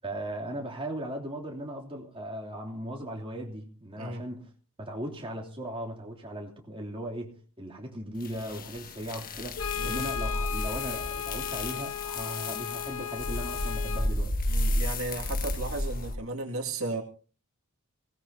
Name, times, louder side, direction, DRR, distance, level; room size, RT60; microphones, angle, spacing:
voice 1, 0.0-4.5 4.8-14.3, right 1 dB, 25° right, 3.1 m, -38 dB
sound 1, 8.2-16.1, left 1 dB, 40° left, 1.5 m, -32 dB
Brass instrument, 9.6-14.1, left 9 dB, 65° left, 1.2 m, -36 dB
voice 2, 14.5-17.0, right 2 dB, 65° right, 2.3 m, -35 dB
22.5 x 17.5 x 2.8 m
head